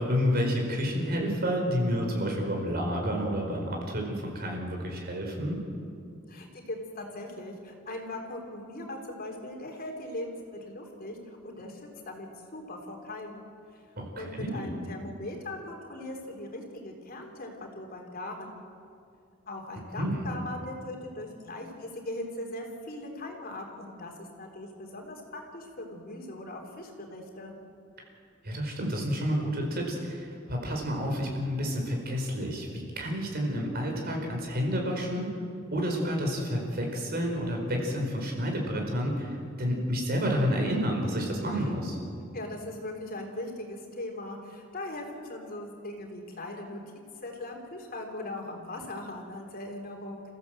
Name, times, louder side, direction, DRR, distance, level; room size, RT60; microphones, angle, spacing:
voice 1, 0.0-5.6 14.0-14.7 20.0-20.2 28.4-35.3 35.7-42.0, equal, 50° right, 1 dB, 4.7 m, -30 dB
voice 2, 6.3-13.5 13.7-13.8 14.2-18.6 19.5-27.5 41.6-41.7 42.3-46.8 47.2-50.2, left 1 dB, 45° left, 2 dB, 3.4 m, -40 dB
29.0 x 15.5 x 7.7 m, 2.4 s
head